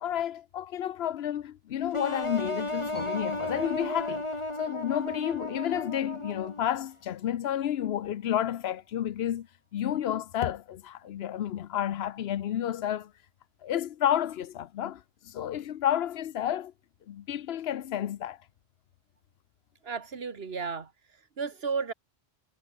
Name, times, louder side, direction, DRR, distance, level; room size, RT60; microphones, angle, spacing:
voice 1, 0.0-4.2 4.6-9.5 9.7-13.1 13.6-16.7 17.1-18.4, left 10 dB, 80° left, 0.9 m, -31 dB
sound 1, 1.9-6.8, left 1 dB, 30° left, 3.3 m, -34 dB
sound 2, 2.9-7.2, equal, 10° right, 3.1 m, -46 dB
voice 2, 19.8-21.9, right 5 dB, 75° right, 1.8 m, -34 dB
omnidirectional pair, 1.0 m